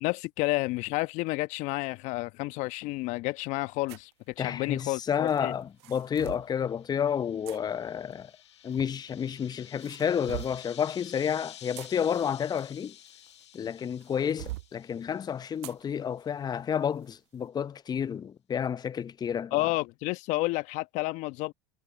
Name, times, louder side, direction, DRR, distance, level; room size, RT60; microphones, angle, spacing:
voice 1, 0.0-4.1 4.4-5.5 19.5-21.5, left 21 dB, 60° left, 1.2 m, -30 dB
sound 1, 3.9-4.1 5.3-6.5 7.5-7.6 8.7-9.3 9.8-10.7 11.5-13.6 14.0-14.7 15.6-15.8 16.3-16.4 17.0-17.2, right 19 dB, 70° right, 0.5 m, -42 dB
voice 2, 4.4-8.3 8.6-12.9 13.5-19.7, left 8 dB, 30° left, 0.8 m, -30 dB
sound 2, 6.0-15.8, left 11 dB, 85° left, 1.3 m, -52 dB
hypercardioid pair, 75°, 14 cm